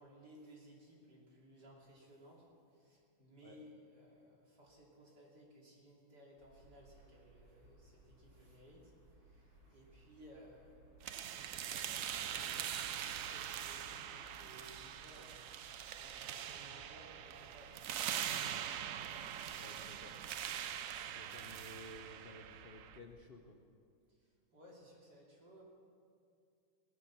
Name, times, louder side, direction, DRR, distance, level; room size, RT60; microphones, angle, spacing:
voice 1, 0.0-15.7 15.9-17.9 24.1-25.6, equal, 55° right, -3 dB, 3.4 m, -60 dB
sound 1, 6.4-23.1, right 1 dB, 70° right, 3.2 m, -64 dB
sound 2, 11.0-23.0, right 9 dB, 90° right, 0.7 m, -43 dB
voice 2, 19.5-20.2 21.1-23.6, left 1 dB, 50° left, 1 dB, 0.7 m, -54 dB
18.0 x 11.5 x 6.0 m, 2.3 s
omnidirectional pair, 2.2 m